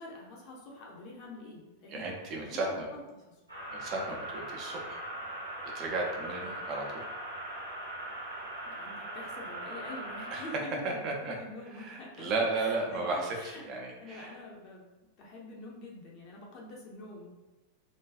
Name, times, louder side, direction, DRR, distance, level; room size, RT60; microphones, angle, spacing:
voice 1, 0.0-2.1 2.4-3.4 8.6-12.3 12.6-13.0 13.3-13.7 14.0-14.9 15.2-17.3, left 2 dB, 35° left, -3 dB, 0.6 m, -46 dB
voice 2, 1.9-2.9 3.7-5.0 5.7-7.1 10.3-10.5 10.8-11.3 11.7-13.4 13.6-14.3, right 3 dB, 35° right, 0 dB, 0.5 m, -34 dB
sound 1, 3.5-10.6, right 1 dB, 75° right, 0.7 m, -40 dB
2.4 x 2.2 x 2.3 m, 1.1 s
figure-of-eight pair, 90°, 0 cm